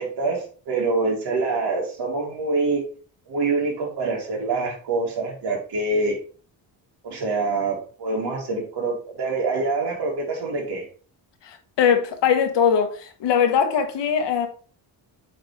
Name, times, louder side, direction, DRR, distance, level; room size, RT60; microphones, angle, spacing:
voice 1, 0.0-2.8 3.3-6.2 7.0-10.9, right 3 dB, 60° right, 2.5 m, -25 dB
voice 2, 11.4-14.5, left 7 dB, 70° left, 1.2 m, -21 dB
8.3 x 3.6 x 3.2 m
cardioid pair, 125°, 44 cm